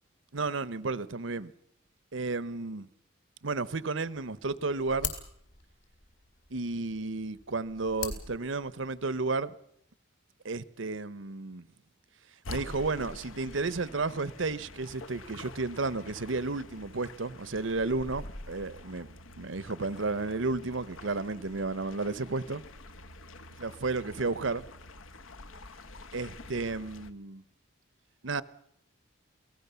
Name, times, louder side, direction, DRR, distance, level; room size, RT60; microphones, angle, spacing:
voice 1, 0.3-1.5 2.1-2.9 3.4-5.1 6.5-9.5 10.4-11.7 12.5-19.1 19.4-22.6 23.6-24.7 26.1-27.4 28.2-28.4, right 3 dB, 70° right, 0.9 m, -32 dB
sound 1, 4.2-9.2, left 7 dB, 65° left, 4.6 m, -43 dB
sound 2, 12.4-27.1, left 2 dB, 80° left, 1.2 m, -47 dB
27.5 x 18.5 x 7.0 m
head